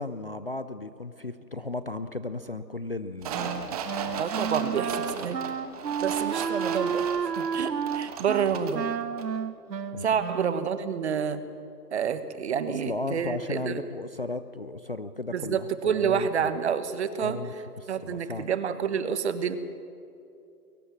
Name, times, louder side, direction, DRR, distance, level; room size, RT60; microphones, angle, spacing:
voice 1, 0.0-4.2 9.9-10.2 12.7-16.5 17.2-18.5, left 2 dB, 40° left, 11 dB, 0.4 m, -36 dB
sound 1, 3.2-8.9 9.2-9.3, right 6 dB, 25° right, 1.3 m, -36 dB
Wind instrument woodwind instrument, 3.3-10.8, right 7 dB, 80° right, 1.2 m, -31 dB
voice 2, 4.2-5.4 6.0-7.0 7.4-8.9 10.0-11.4 11.9-13.8 15.3-17.6 17.9-19.6, right 7 dB, 40° right, 12 dB, 1.4 m, -28 dB
22.5 x 18.5 x 7.2 m, 2.6 s
hypercardioid pair, 155°, 49 cm